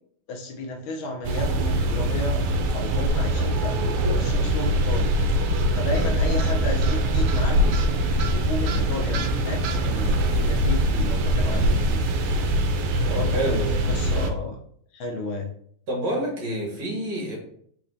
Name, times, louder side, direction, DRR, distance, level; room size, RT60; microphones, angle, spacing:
voice 1, 0.3-2.4 2.7-5.3 5.7-7.8 8.1-12.0 13.0-14.6 14.9-15.5, left 1 dB, 75° left, 1 dB, 1.6 m, -33 dB
sound 1, 1.2-14.3, right 1 dB, 80° right, 1.5 m, -23 dB
voice 2, 13.3-13.8 15.9-17.4, equal, 55° right, -2 dB, 1.8 m, -27 dB
4.2 x 4.1 x 2.6 m, 0.63 s
omnidirectional pair, 2.4 m